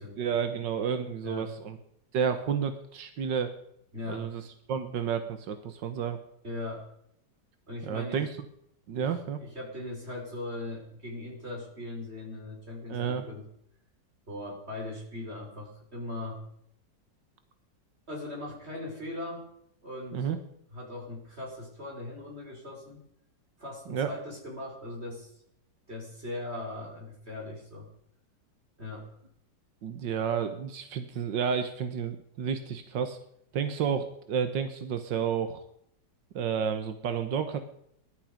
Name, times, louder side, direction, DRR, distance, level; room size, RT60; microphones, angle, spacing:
voice 1, 0.0-1.8 2.1-3.5 4.1-4.4 4.7-6.2 7.9-8.3 8.9-9.4 12.9-13.3 20.1-20.4 23.9-24.1 29.8-33.2 33.5-35.6 36.4-37.6, right 7 dB, 85° right, 9 dB, 1.8 m, -31 dB
voice 2, 3.9-4.3 6.4-6.8 7.7-8.2 9.0-13.5 14.3-16.4 18.1-19.5 19.8-20.3 20.7-23.0 23.6-25.3 25.9-27.9 28.8-29.1, left 2 dB, 35° right, 0 dB, 5.4 m, -39 dB
20.0 x 12.0 x 5.2 m, 0.72 s
omnidirectional pair, 1.9 m